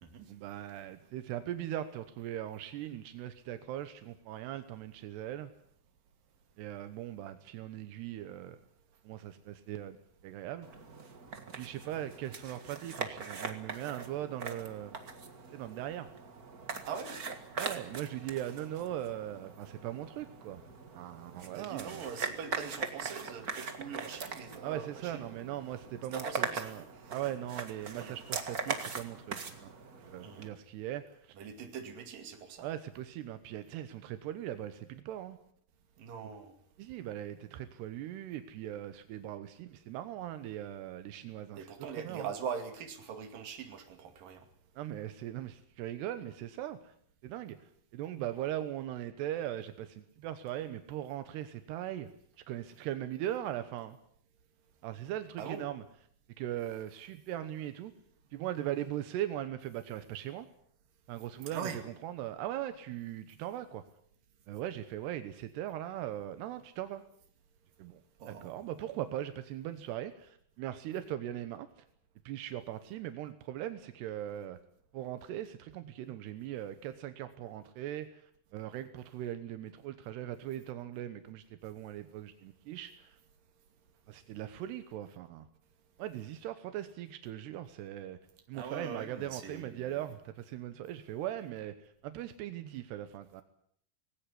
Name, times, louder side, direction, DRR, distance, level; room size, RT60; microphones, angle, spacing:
voice 1, 0.3-5.5 6.6-8.6 9.0-10.7 11.5-15.0 15.5-16.1 17.6-20.6 20.9-22.0 24.6-29.7 30.0-31.4 32.6-35.4 36.8-41.7 42.0-42.3 44.8-46.9 47.2-47.6 47.9-52.1 52.5-54.0 54.8-55.8 56.4-57.9 58.3-60.5 61.1-63.8 64.5-67.0 67.8-68.0 68.3-71.7 72.3-74.6 74.9-83.2 84.1-85.5 86.0-88.2 88.5-93.4, right 12 dB, 85° right, 10 dB, 3.2 m, -40 dB
sound 1, 10.6-30.5, right 5 dB, 45° right, 1.2 m, -41 dB
voice 2, 16.9-17.2 21.6-25.3 26.1-26.8 27.0-27.2 28.0-28.2 30.2-30.5 31.4-32.7 36.0-36.5 41.5-44.5 55.4-55.6 61.5-61.8 68.2-68.7 88.5-90.1, right 7 dB, 60° right, 6 dB, 3.9 m, -42 dB
19.0 x 18.0 x 9.8 m, 0.64 s
omnidirectional pair, 4.7 m